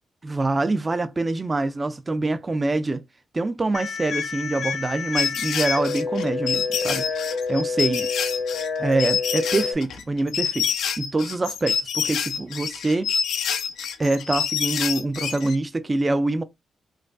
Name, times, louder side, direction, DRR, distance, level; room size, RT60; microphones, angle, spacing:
voice 1, 0.2-3.0 3.3-8.1 8.8-13.1 14.0-16.4, right 2 dB, 25° right, 0.3 m, -25 dB
sound 1, 3.7-9.7, left 4 dB, 65° left, 0.8 m, -28 dB
sound 2, 5.2-15.6, left 7 dB, 90° left, 0.5 m, -27 dB
4.5 x 2.2 x 2.4 m
cardioid pair, 95°, 0 cm